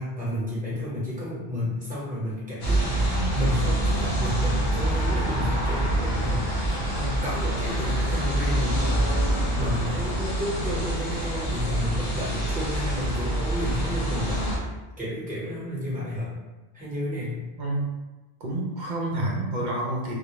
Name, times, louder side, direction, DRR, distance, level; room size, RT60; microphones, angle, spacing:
voice 1, 0.0-9.0 9.6-14.7 15.0-16.3 16.7-17.4, left 1 dB, 10° right, -9 dB, 0.9 m, -31 dB
sound 1, 2.6-14.6, right 1 dB, 55° left, 0.8 m, -26 dB
voice 2, 18.4-20.2, right 1 dB, 55° right, -4 dB, 0.6 m, -28 dB
2.2 x 2.1 x 2.9 m, 1.1 s
omnidirectional pair, 1.0 m